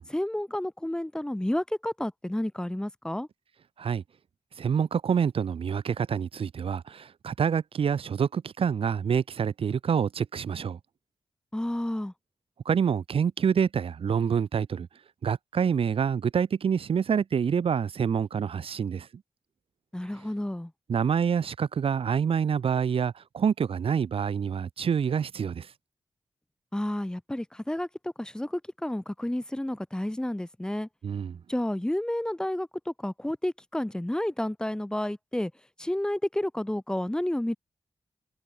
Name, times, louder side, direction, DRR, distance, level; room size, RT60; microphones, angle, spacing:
voice 1, 0.1-3.3 11.5-12.1 19.9-20.7 26.7-30.9 31.5-35.5 35.8-37.6, left 1 dB, 10° left, 7.4 m, -31 dB
voice 2, 4.6-10.8 12.6-14.9 15.2-19.1 20.9-25.7 31.0-31.4, right 7 dB, 90° right, 4.6 m, -27 dB
wide cardioid pair, 135°, 9 cm